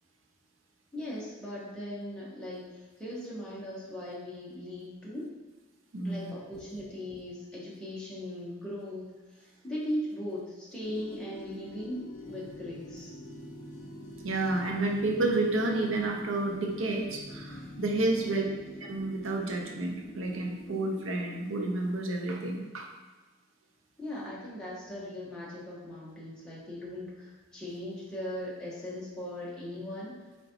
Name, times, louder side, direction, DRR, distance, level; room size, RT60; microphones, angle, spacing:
voice 1, 0.9-5.3 6.0-9.1 9.4-13.1 18.1-18.6 24.0-30.2, left 1 dB, 5° left, -8 dB, 0.8 m, -39 dB
voice 2, 5.9-6.3 14.2-18.4 18.8-22.9, right 2 dB, 75° right, 1 dB, 0.6 m, -30 dB
sound 1, 10.8-21.9, left 1 dB, 65° left, 0.6 m, -46 dB
3.9 x 3.3 x 2.8 m, 1.3 s
head